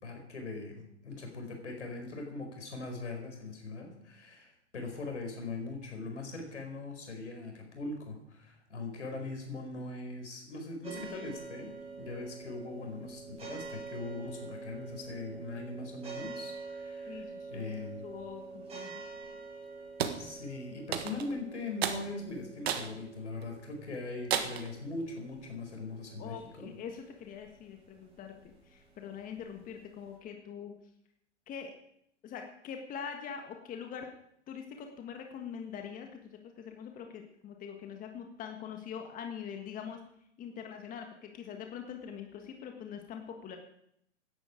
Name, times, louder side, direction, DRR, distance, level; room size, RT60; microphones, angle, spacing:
voice 1, 0.0-18.1 20.2-26.7, left 3 dB, 75° left, 3 dB, 4.8 m, -41 dB
sound 1, 10.8-30.2, right 4 dB, 15° right, 6.3 m, -47 dB
voice 2, 17.1-17.7 18.0-19.1 26.2-28.3 28.7-30.7 31.5-31.7 32.2-34.1 34.5-40.0 40.4-43.6, left 7 dB, 25° left, 4 dB, 1.5 m, -43 dB
sound 2, 20.0-20.2 20.9-21.3 21.8-22.0 22.6-22.9 23.4-23.5 24.3-24.7, right 8 dB, 60° right, 1.6 m, -32 dB
16.5 x 10.5 x 5.0 m, 0.74 s
figure-of-eight pair, 105°, 35 cm